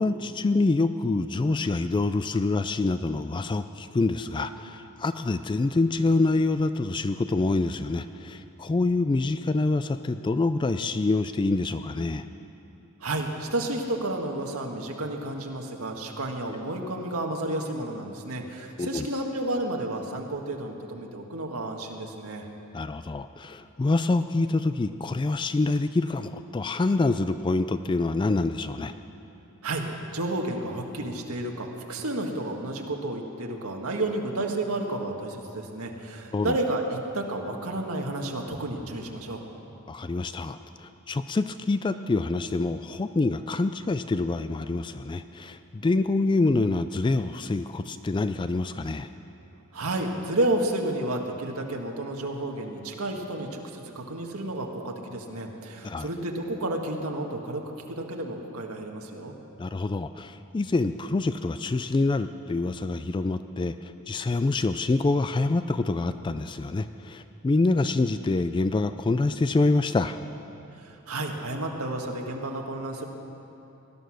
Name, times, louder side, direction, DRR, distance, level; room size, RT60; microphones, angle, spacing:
voice 1, 0.0-12.2 18.8-19.1 22.7-28.9 36.3-36.6 39.9-49.1 55.8-56.1 59.6-70.2, left 3 dB, 20° left, 11 dB, 0.3 m, -26 dB
voice 2, 13.0-22.5 29.6-29.8 30.1-39.4 49.7-57.6 57.9-59.3 70.8-73.1, right 1 dB, 85° right, 1 dB, 1.7 m, -31 dB
19.5 x 11.5 x 6.3 m, 2.9 s
head